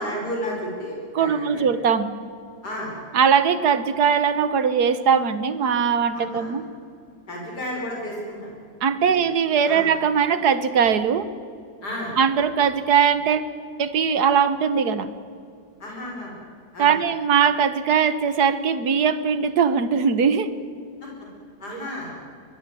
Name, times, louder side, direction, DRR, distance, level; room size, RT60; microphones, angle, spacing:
voice 1, 0.0-1.6 2.6-2.9 6.1-6.6 7.3-8.5 9.0-9.2 9.7-9.9 11.8-12.2 15.8-16.3 16.7-16.9 21.0-21.1 21.6-22.1, equal, 70° left, -2 dB, 5.7 m, -32 dB
voice 2, 1.2-2.1 3.1-6.6 8.8-11.3 12.2-13.4 13.8-15.1 16.8-20.5, right 7 dB, 65° right, 12 dB, 1.7 m, -20 dB
24.5 x 21.0 x 7.7 m, 2.4 s
omnidirectional pair, 1.8 m